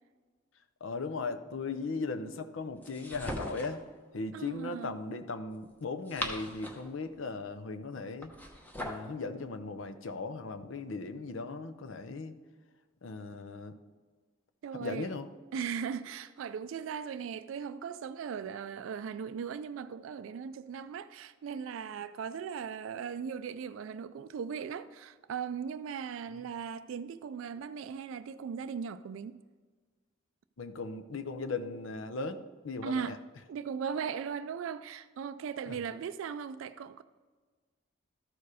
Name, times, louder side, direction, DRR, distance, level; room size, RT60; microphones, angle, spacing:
voice 1, 0.8-3.8 4.1-8.3 8.8-12.4 13.0-13.8 14.7-15.3 30.6-33.2 35.7-35.8, left 3 dB, 70° left, 0.6 m, -38 dB
sound 1, 2.8-3.8 5.8-6.9 8.2-9.1, equal, 10° left, 0.8 m, -40 dB
voice 2, 4.3-5.0 14.6-15.1 15.5-29.4 32.8-33.2 33.5-37.0, right 7 dB, 75° right, 0.3 m, -38 dB
13.0 x 4.7 x 4.8 m
head